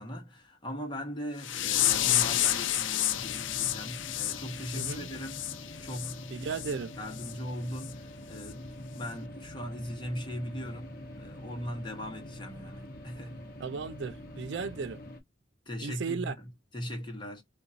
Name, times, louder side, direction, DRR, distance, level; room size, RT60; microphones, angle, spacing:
voice 1, 0.0-6.5 7.0-13.4 15.7-17.4, equal, 25° left, 1.3 m, -39 dB
sound 1, 1.4-6.1 6.5-6.7 7.2-7.3 7.8-7.9 8.4-8.5, left 12 dB, 70° left, 0.5 m, -30 dB
sound 2, 3.1-15.2, left 1 dB, 45° left, 1.0 m, -45 dB
voice 2, 4.7-5.1 6.3-6.9 13.6-15.0 15.8-16.3, right 5 dB, 60° right, 0.4 m, -35 dB
3.7 x 2.6 x 2.6 m
head